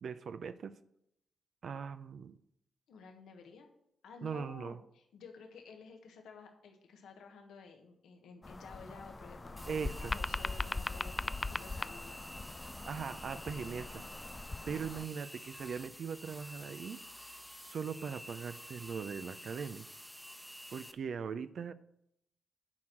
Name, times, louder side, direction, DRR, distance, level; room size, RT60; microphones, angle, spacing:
voice 1, 0.0-0.7 1.6-2.4 4.2-4.8 9.7-10.2 12.8-14.0 14.7-17.0 17.6-19.9 20.7-21.7, right 6 dB, 65° right, 11 dB, 0.5 m, -40 dB
voice 2, 2.9-3.7 4.0-12.2, left 5 dB, 85° left, 3 dB, 1.4 m, -53 dB
sound 1, 8.4-15.1, left 3 dB, 30° left, 0.3 m, -40 dB
sound 2, 9.6-20.9, equal, ahead, 1.0 m, -50 dB
9.7 x 4.5 x 7.6 m, 0.76 s
supercardioid pair, 55°, 0 cm